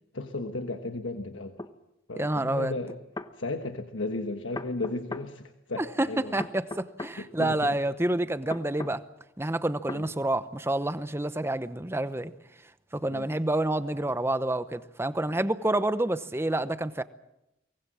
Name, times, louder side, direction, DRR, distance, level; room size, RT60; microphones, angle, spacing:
voice 1, 0.1-1.6 2.1-3.0 3.3-6.4 7.2-7.8 9.9-10.1 13.1-13.3, left 2 dB, 85° left, 1.3 m, -35 dB
sound 1, 1.6-1.7 2.9-3.3 4.5-5.3 6.4-7.2 8.5-9.0 9.9-10.1, left 2 dB, 20° left, 0.9 m, -37 dB
voice 2, 2.2-2.7 5.8-6.1 6.3-9.0 9.4-12.3 12.9-17.0, right 1 dB, 15° right, 0.8 m, -28 dB
24.0 x 19.5 x 7.5 m
head